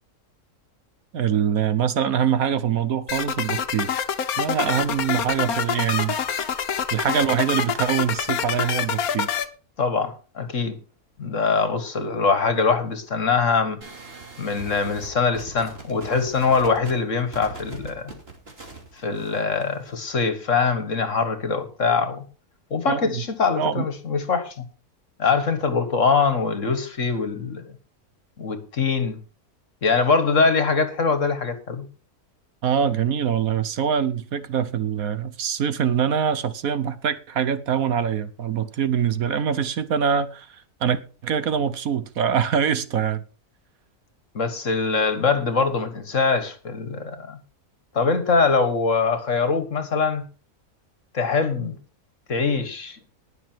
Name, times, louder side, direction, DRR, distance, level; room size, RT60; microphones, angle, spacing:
voice 1, 1.1-4.0 4.4-6.2 6.9-9.3 22.9-23.2 23.6-23.9 32.6-43.2, right 8 dB, 70° right, 1.4 m, -24 dB
sound 1, 3.1-9.4, left 8 dB, 70° left, 1.5 m, -26 dB
voice 2, 9.8-10.8 11.2-13.8 14.4-18.1 19.0-22.2 22.7-24.7 25.2-27.7 28.4-29.2 29.8-31.9 44.3-47.4 47.9-50.2 51.1-51.7 52.3-53.0, left 4 dB, 55° left, 1.9 m, -23 dB
sound 2, 13.8-19.9, right 3 dB, 40° right, 3.2 m, -41 dB
19.5 x 6.7 x 4.6 m
omnidirectional pair, 1.6 m